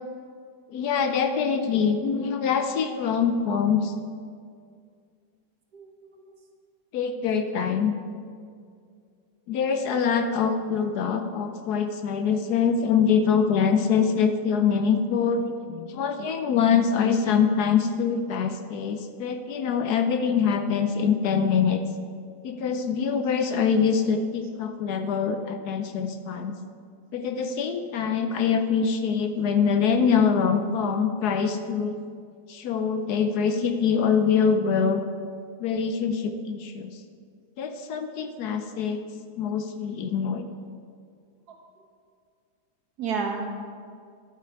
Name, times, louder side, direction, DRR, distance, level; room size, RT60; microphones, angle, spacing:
voice 1, 0.7-3.9 6.9-7.9 9.5-21.8 22.4-26.5 27.1-32.0 32.5-35.0 35.6-37.0 37.6-39.0 39.4-40.5, left 6 dB, 70° left, 8 dB, 1.1 m, -24 dB
voice 2, 5.7-6.3 43.0-43.5, right 5 dB, 65° right, 1 dB, 1.8 m, -33 dB
11.0 x 8.3 x 4.6 m, 2.2 s
omnidirectional pair, 1.9 m